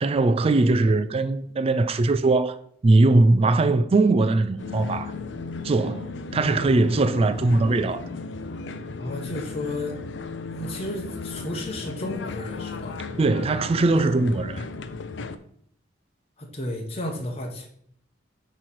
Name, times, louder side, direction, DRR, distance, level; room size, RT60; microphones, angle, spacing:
voice 1, 0.0-2.6 2.8-5.1 5.6-8.1 13.2-14.6, right 2 dB, 30° right, 0.4 m, -20 dB
sound 1, 4.6-15.4, left 4 dB, 75° left, 0.6 m, -35 dB
voice 2, 9.0-10.0 10.5-13.0 16.4-17.7, left 1 dB, 35° left, 1.0 m, -33 dB
8.0 x 3.2 x 5.8 m
head